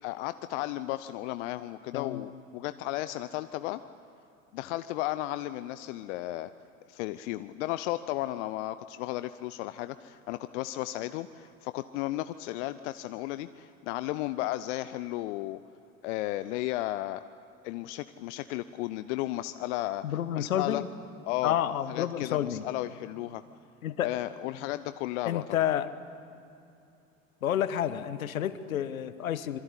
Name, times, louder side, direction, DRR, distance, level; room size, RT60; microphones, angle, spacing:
voice 1, 0.0-3.8 4.5-6.5 6.9-15.6 16.0-17.2 17.6-20.0 20.3-20.8 21.2-21.6 21.9-23.4 24.0-25.6, left 16 dB, 55° left, 13 dB, 0.8 m, -34 dB
voice 2, 1.9-2.3 20.0-20.9 21.4-22.6 23.8-24.1 25.2-25.9 27.4-29.6, left 10 dB, 75° left, 13 dB, 1.3 m, -30 dB
26.0 x 23.5 x 8.3 m, 2.7 s
figure-of-eight pair, 75°, 42 cm